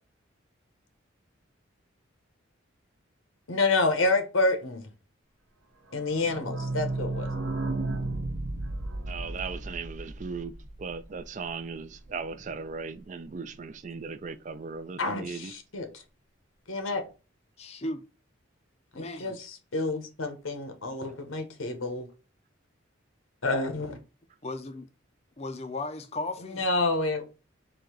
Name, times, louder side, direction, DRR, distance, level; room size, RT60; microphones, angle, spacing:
voice 1, 3.5-4.9 5.9-7.3 15.0-15.9 16.7-17.0 18.9-22.1 23.4-24.0 26.4-27.2, left 2 dB, 85° left, 1.1 m, -28 dB
sound 1, 5.9-11.4 11.8-11.9 12.0-12.1 12.4-12.5, right 2 dB, 70° right, 0.9 m, -33 dB
voice 2, 9.1-15.5, right 5 dB, 35° right, 0.4 m, -38 dB
voice 3, 17.6-18.0 18.9-19.4 24.4-24.9 25.4-26.6, left 2 dB, 30° left, 0.5 m, -36 dB
3.8 x 2.8 x 4.6 m
head